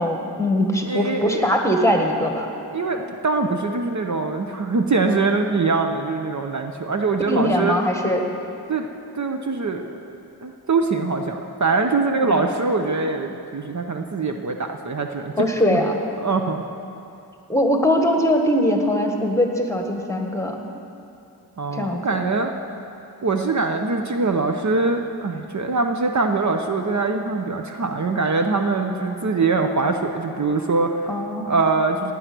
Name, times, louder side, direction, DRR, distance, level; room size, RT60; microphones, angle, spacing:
voice 1, 0.0-2.5 7.3-8.3 12.4-12.5 15.4-15.9 17.5-20.6 21.7-22.0 31.1-31.5, left 1 dB, 5° left, 2 dB, 1.6 m, -21 dB
voice 2, 0.8-1.5 2.7-7.8 8.7-8.9 9.1-10.0 10.4-15.3 15.7-15.8 16.2-16.6 21.6-22.5 23.2-31.1 31.5-32.1, right 3 dB, 45° right, 4 dB, 0.9 m, -23 dB
17.0 x 9.4 x 6.1 m, 2.7 s
wide cardioid pair, 85°, 39 cm